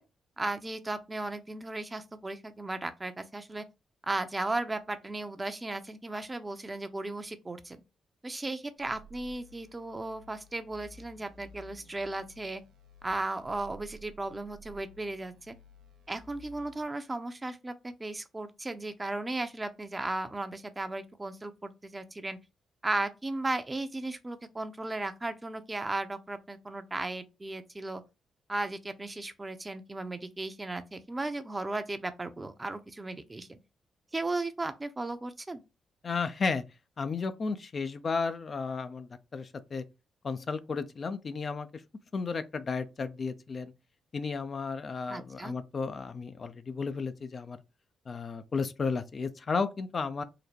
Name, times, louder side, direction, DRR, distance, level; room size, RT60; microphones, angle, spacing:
voice 1, 0.4-3.6 4.0-7.8 8.2-12.6 13.0-15.5 16.1-22.4 22.8-28.0 28.5-33.6 34.1-35.6 45.1-45.5, right 2 dB, 25° right, 0.6 m, -36 dB
sound 1, 8.8-16.8, right 1 dB, 75° right, 0.6 m, -54 dB
voice 2, 36.0-36.6 37.0-39.8 40.2-41.8 42.1-43.7 44.1-47.6 48.1-50.2, left 4 dB, 50° left, 0.4 m, -33 dB
3.8 x 2.1 x 3.4 m
supercardioid pair, 50°, 0 cm